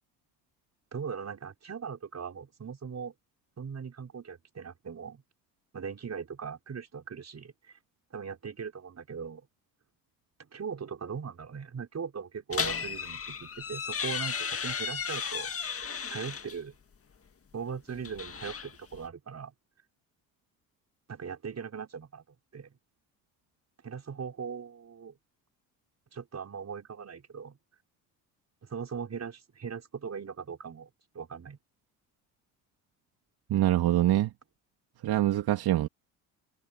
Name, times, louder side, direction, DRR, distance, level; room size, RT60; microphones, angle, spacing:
voice 1, 0.9-3.1 3.6-5.2 5.7-7.5 8.1-9.4 10.4-15.8 16.1-16.8 17.5-19.5 21.1-22.2 22.5-22.8 23.8-25.1 26.1-27.6 28.7-30.9 31.1-31.6, right 6 dB, 40° right, 5.9 m, -39 dB
sound 1, 12.5-16.6 17.9-19.1, left 6 dB, 35° left, 1.9 m, -34 dB
voice 2, 33.5-34.3 35.0-35.9, right 14 dB, 65° right, 2.6 m, -24 dB
hypercardioid pair, 65°, 41 cm